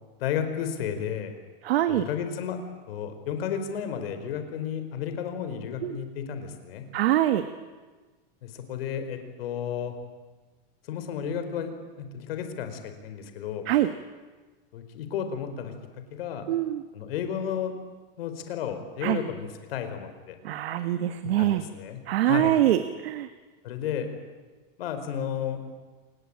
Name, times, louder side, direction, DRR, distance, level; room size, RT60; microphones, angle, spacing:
voice 1, 0.2-1.3 1.9-2.6 2.9-6.9 8.4-9.9 10.9-11.7 12.0-13.6 14.7-15.7 16.1-16.5 16.9-17.7 18.2-20.4 21.2-22.5 23.6-24.1 24.8-25.6, left 8 dB, 75° left, 8 dB, 4.5 m, -32 dB
voice 2, 1.6-2.0 5.8-6.0 6.9-7.4 13.7-13.9 16.5-16.8 19.0-19.2 20.4-21.6 22.1-23.3, right 13 dB, 90° right, 9 dB, 1.6 m, -24 dB
27.5 x 19.5 x 8.8 m, 1.3 s
supercardioid pair, 165°, 29 cm